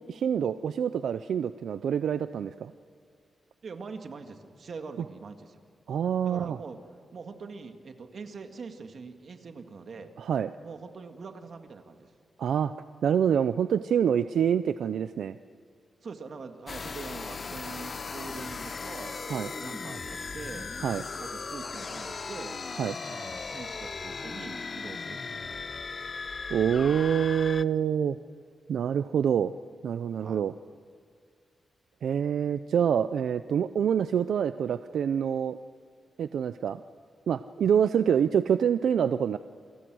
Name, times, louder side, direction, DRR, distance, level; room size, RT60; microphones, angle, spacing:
voice 1, 0.0-2.7 5.9-6.6 10.2-10.5 12.4-12.7 13.0-15.4 19.3-19.5 20.8-21.0 22.8-22.9 26.5-28.2 28.7-29.5 29.8-30.5 32.0-35.6 36.2-36.8 37.3-39.4, right 8 dB, 85° right, 12 dB, 0.5 m, -26 dB
voice 2, 3.6-5.6 6.2-6.8 7.1-10.1 10.6-12.1 16.0-20.7 21.2-22.6 23.0-25.6 30.2-30.4, right 4 dB, 55° right, 6 dB, 2.1 m, -43 dB
sound 1, 16.7-27.6, left 4 dB, 40° left, 0.6 m, -37 dB
28.0 x 25.5 x 6.3 m, 2.2 s
wide cardioid pair, 130°, 0 cm